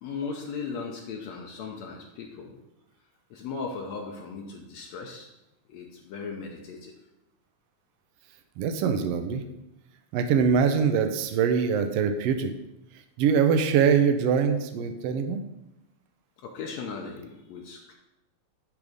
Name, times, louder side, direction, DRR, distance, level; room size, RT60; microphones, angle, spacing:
voice 1, 0.0-2.6 3.3-5.3 5.7-6.9 16.4-17.9, left 5 dB, 70° left, 1 dB, 1.9 m, -37 dB
voice 2, 8.6-9.4 10.1-12.5 13.2-15.4, right 6 dB, 75° right, 7 dB, 1.5 m, -23 dB
10.5 x 3.6 x 5.1 m, 0.93 s
omnidirectional pair, 3.5 m